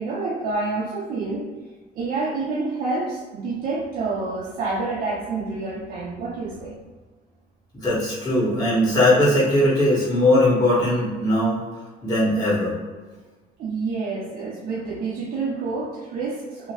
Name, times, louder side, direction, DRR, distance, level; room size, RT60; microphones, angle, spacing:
voice 1, 0.0-1.5 1.9-6.8 13.6-16.7, right 3 dB, 55° right, -5 dB, 0.5 m, -28 dB
voice 2, 7.7-11.6 12.0-12.7, left 1 dB, 20° left, -9 dB, 1.4 m, -19 dB
2.8 x 2.0 x 2.9 m, 1.3 s
cardioid pair, 110°, 17 cm